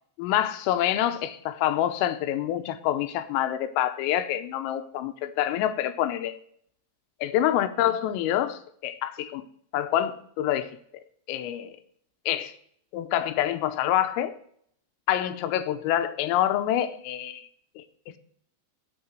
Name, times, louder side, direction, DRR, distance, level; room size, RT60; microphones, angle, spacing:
voice 1, 0.2-6.4 7.2-9.4 9.7-10.7 11.3-11.8 12.3-12.5 12.9-14.3 15.1-17.5 17.8-17.9, left 12 dB, 90° left, 3.4 m, -26 dB
9.4 x 8.1 x 7.7 m
omnidirectional pair, 5.9 m